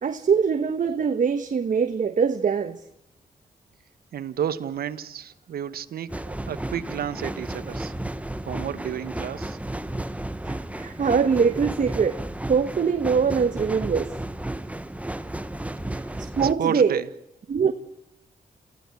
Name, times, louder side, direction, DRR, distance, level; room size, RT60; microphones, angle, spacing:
voice 1, 0.0-2.8 10.5-12.2 12.5-14.1 16.2-17.0 17.5-17.7, right 6 dB, 55° right, 1.3 m, -23 dB
voice 2, 4.1-6.1 6.5-7.9 8.4-9.6 15.9-17.1, right 9 dB, 80° right, 1.3 m, -31 dB
sound 1, 6.1-16.5, right 1 dB, 10° right, 1.4 m, -33 dB
28.0 x 15.5 x 8.5 m
cardioid pair, 65°, 15 cm